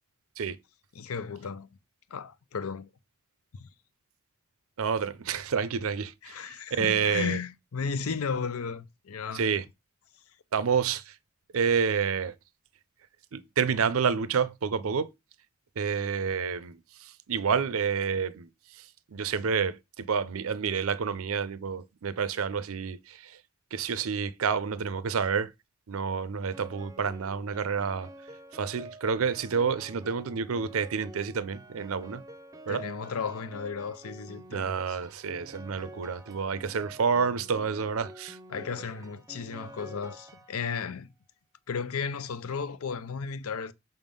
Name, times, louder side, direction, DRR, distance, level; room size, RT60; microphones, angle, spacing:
voice 1, 0.9-1.8 2.1-2.9 3.5-3.7 6.2-9.6 32.7-35.0 38.5-41.1 41.7-43.7, left 5 dB, 90° left, 0.6 m, -34 dB
voice 2, 4.8-7.4 9.3-9.6 10.5-11.2 11.5-12.3 13.3-15.1 15.8-23.4 23.7-25.5 25.9-28.1 28.5-32.2 32.7-32.9 34.5-38.4, right 6 dB, 80° right, 0.5 m, -29 dB
Piano, 26.5-40.9, right 1 dB, 15° right, 0.5 m, -48 dB
5.5 x 3.6 x 5.3 m
head